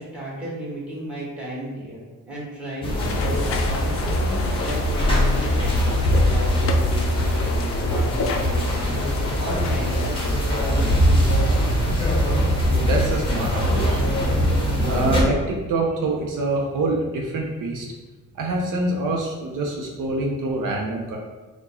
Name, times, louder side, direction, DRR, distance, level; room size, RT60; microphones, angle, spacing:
voice 1, 0.0-11.5, right 1 dB, 5° right, -6 dB, 1.5 m, -34 dB
sound 1, 2.8-15.2, equal, 15° left, 1.0 m, -21 dB
sound 2, 3.0-10.1, left 4 dB, 40° left, 0.5 m, -32 dB
voice 2, 12.8-14.0 14.8-17.9 18.3-21.2, right 2 dB, 65° right, 0 dB, 0.7 m, -25 dB
4.5 x 2.3 x 4.2 m, 1.2 s
cardioid pair, 115°, 34 cm